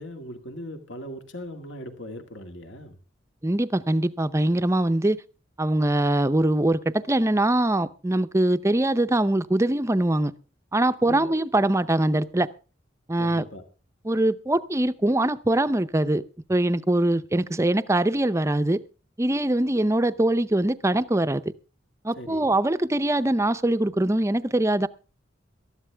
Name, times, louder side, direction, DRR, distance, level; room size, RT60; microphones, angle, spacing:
voice 1, 0.0-3.0 11.0-11.4 13.2-13.6 22.2-22.5, equal, 70° left, 2.0 m, -39 dB
voice 2, 3.4-5.2 5.6-10.3 10.7-12.5 13.1-13.5 14.0-16.2 16.5-18.8 19.2-21.4 22.0-24.9, right 1 dB, 15° right, 0.7 m, -22 dB
19.0 x 13.5 x 3.4 m
head